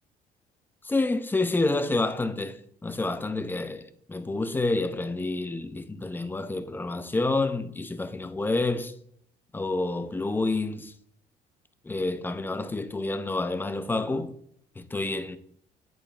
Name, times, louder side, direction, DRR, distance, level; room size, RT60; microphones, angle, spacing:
voice 1, 0.8-8.9 9.5-10.9 11.8-14.4 14.8-15.4, left 2 dB, 10° left, 0.5 m, -28 dB
8.6 x 5.4 x 2.4 m
cardioid pair, 110°, 17 cm